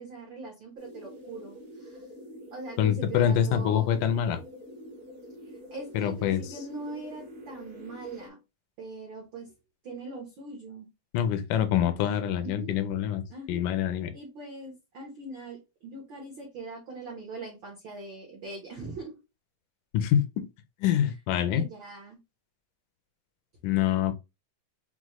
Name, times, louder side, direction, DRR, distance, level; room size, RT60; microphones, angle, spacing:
voice 1, 0.0-2.0 2.5-3.9 5.7-8.4 8.8-9.5 9.8-10.9 12.4-12.7 13.3-13.6 14.1-19.2 21.5-22.2, right 3 dB, 75° right, 1.1 m, -41 dB
sound 1, 0.8-8.3, equal, 60° right, 0.8 m, -46 dB
voice 2, 2.8-4.4 5.9-6.4 11.1-13.2 13.5-14.1 19.9-20.4 20.8-21.6 23.6-24.1, left 9 dB, 80° left, 2.2 m, -25 dB
6.0 x 2.1 x 3.0 m
omnidirectional pair, 3.7 m